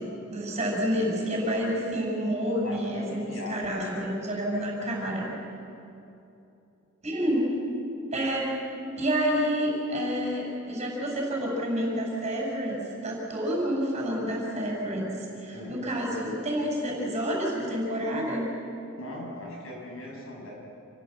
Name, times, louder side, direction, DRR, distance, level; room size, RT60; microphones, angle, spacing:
voice 1, 0.0-5.2 7.0-7.5 8.1-8.5 9.0-18.5, equal, 30° right, -2 dB, 6.3 m, -29 dB
voice 2, 2.6-3.8 4.5-5.2 15.5-15.7 19.0-20.5, left 1 dB, 70° left, -3 dB, 7.9 m, -40 dB
28.5 x 16.5 x 7.8 m, 2.8 s
head